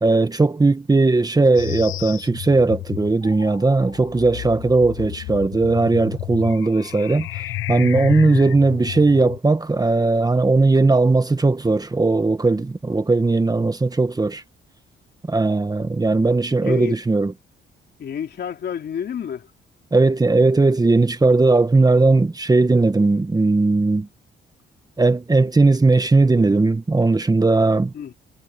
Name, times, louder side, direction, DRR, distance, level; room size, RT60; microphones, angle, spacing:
voice 1, 0.0-14.4 15.3-17.3 19.9-24.1 25.0-27.9, right 3 dB, 20° right, 1.5 m, -18 dB
sound 1, 1.5-9.4, left 15 dB, 85° left, 1.1 m, -31 dB
voice 2, 16.6-17.0 18.0-19.5 27.9-28.1, left 8 dB, 55° left, 3.1 m, -29 dB
cardioid pair, 90°, 20 cm